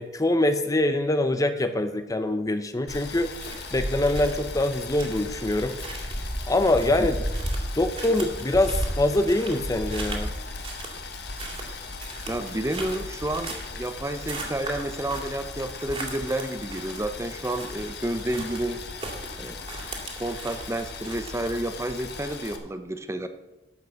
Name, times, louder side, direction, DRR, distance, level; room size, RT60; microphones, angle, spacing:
voice 1, 0.0-3.3 3.7-5.8 6.5-7.1 7.8-10.3, left 1 dB, 20° left, 9 dB, 0.6 m, -24 dB
Boiling, 2.9-22.6, left 4 dB, 65° left, 1.5 m, -39 dB
sound 1, 3.0-21.6, right 1 dB, 30° right, 2.3 m, -36 dB
voice 2, 12.3-18.8 19.4-19.6 20.2-23.3, right 1 dB, 15° right, 9 dB, 0.7 m, -30 dB
12.0 x 6.0 x 7.8 m, 1.0 s
head